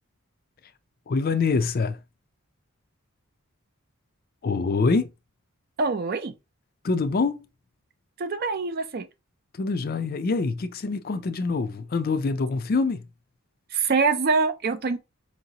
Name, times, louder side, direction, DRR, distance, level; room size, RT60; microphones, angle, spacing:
voice 1, 1.1-2.0 4.4-5.1 6.8-7.4 9.5-13.0, left 4 dB, 40° left, 0.4 m, -25 dB
voice 2, 5.8-6.3 8.2-9.1 13.7-15.0, right 4 dB, 45° right, 0.4 m, -24 dB
4.7 x 2.7 x 2.8 m
head